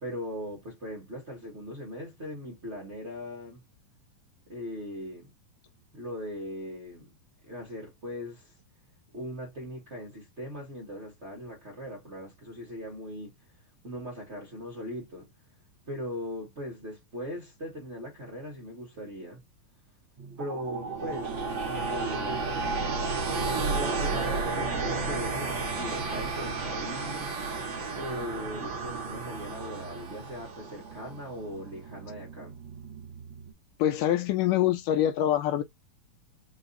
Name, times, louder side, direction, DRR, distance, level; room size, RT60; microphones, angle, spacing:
voice 1, 0.0-3.6 4.5-5.3 5.9-7.1 7.4-8.5 9.1-13.3 13.8-15.3 15.9-19.4 20.4-22.5 23.5-27.4 27.9-32.5, equal, 60° right, 0.7 m, -39 dB
sound 1, 20.2-33.5, right 4 dB, 80° right, 1.0 m, -33 dB
voice 2, 33.8-35.6, left 12 dB, 80° left, 2.0 m, -25 dB
5.3 x 2.5 x 2.5 m
omnidirectional pair, 4.1 m